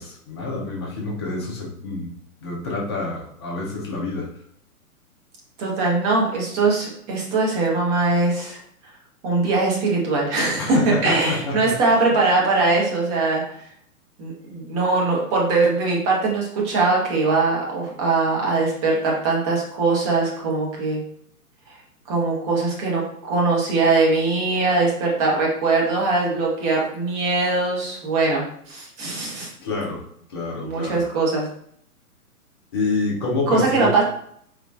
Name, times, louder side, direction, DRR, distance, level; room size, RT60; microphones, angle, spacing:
voice 1, 0.0-2.1 2.4-4.3 10.6-12.0 29.6-30.0 30.3-31.0 32.7-34.0, left 3 dB, 20° left, -4 dB, 0.4 m, -27 dB
voice 2, 5.6-8.6 9.2-13.5 14.2-21.0 22.1-29.5 30.6-31.4 33.5-34.0, right 3 dB, 25° right, -2 dB, 1.0 m, -21 dB
3.6 x 3.1 x 2.3 m, 0.67 s
hypercardioid pair, 125°, 44 cm